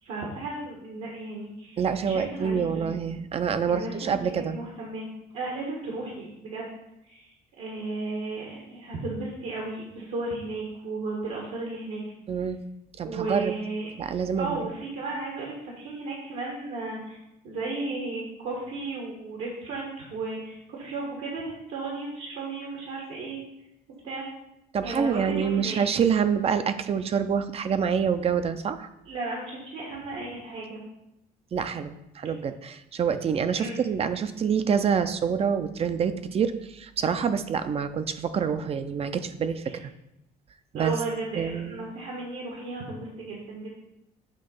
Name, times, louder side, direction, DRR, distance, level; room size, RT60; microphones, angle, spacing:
voice 1, 0.0-2.9 3.7-5.1 5.3-6.7 7.1-7.3 7.6-12.0 13.0-13.9 14.4-17.2 17.4-23.4 24.0-24.3 24.8-25.8 29.0-30.8 33.5-33.8 39.6-39.8 40.7-43.7, right 3 dB, 75° right, -2 dB, 1.4 m, -34 dB
voice 2, 1.8-4.6 12.3-12.6 13.0-13.5 14.0-14.6 24.7-28.9 31.5-39.8 40.7-41.0 41.4-41.8, right 7 dB, 35° right, 11 dB, 0.5 m, -26 dB
7.5 x 2.9 x 5.4 m, 0.86 s
cardioid pair, 110°, 17 cm